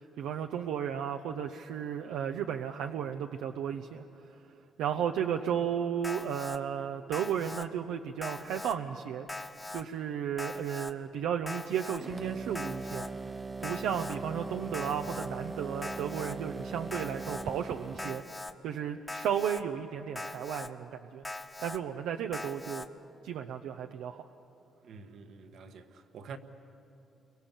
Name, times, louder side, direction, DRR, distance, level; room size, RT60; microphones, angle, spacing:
voice 1, 0.2-4.0 4.8-9.3 9.7-18.2 18.6-21.2 21.6-22.8 23.2-24.2, right 8 dB, 90° right, 0.8 m, -34 dB
Alarm, 6.0-6.6 7.1-7.7 8.2-8.7 9.3-9.8 10.4-10.9 11.5-12.0 12.5-13.1 13.6-14.2 14.7-15.3 15.8-16.3 16.9-17.4 18.0-18.5 19.1-19.6 20.2-20.7 21.2-21.8 22.3-22.9, left 2 dB, 15° left, 1.3 m, -41 dB
sound 1, 12.0-18.2, right 3 dB, 25° right, 0.5 m, -40 dB
voice 2, 24.8-26.4, right 5 dB, 70° right, 1.5 m, -47 dB
29.5 x 23.5 x 7.4 m
cardioid pair, 90°, 0 cm